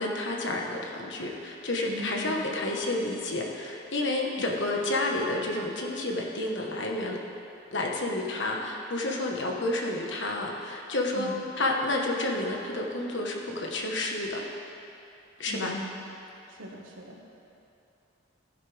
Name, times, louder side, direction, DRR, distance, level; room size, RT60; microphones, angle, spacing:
voice 1, 0.0-7.2 7.7-11.3 11.6-14.4 15.4-15.7, left 2 dB, 65° left, 0 dB, 1.4 m, -30 dB
voice 2, 1.9-2.5 11.1-11.4 15.4-16.0 16.5-17.2, left 1 dB, 80° right, -1 dB, 1.6 m, -39 dB
15.5 x 11.0 x 3.5 m, 2.7 s
head